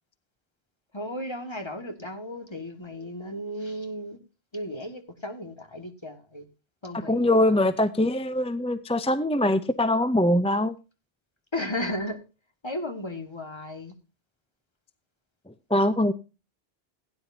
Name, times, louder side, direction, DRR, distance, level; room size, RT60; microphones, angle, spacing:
voice 1, 0.9-4.2 4.5-6.5 6.8-7.4 11.5-12.2 12.6-13.9, left 1 dB, 25° left, 1.9 m, -34 dB
voice 2, 6.9-10.7 15.7-16.1, left 1 dB, 10° left, 0.4 m, -23 dB
17.0 x 9.7 x 2.7 m
omnidirectional pair, 1.1 m